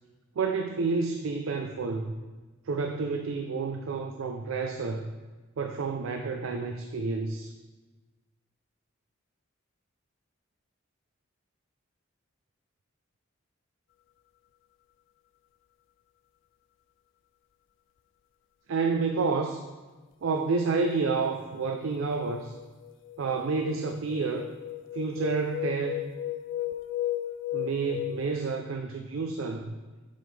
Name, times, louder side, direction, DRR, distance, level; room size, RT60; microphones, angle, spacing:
voice 1, 0.4-2.1 2.6-5.1 5.6-7.5 18.7-19.6 20.2-22.6 23.2-24.5 24.9-26.0 27.5-29.7, right 4 dB, 80° right, 5 dB, 0.4 m, -29 dB
sound 1, 21.3-21.6 22.1-28.3, left 12 dB, 60° left, 0.3 m, -35 dB
7.4 x 5.2 x 3.3 m, 1.3 s
head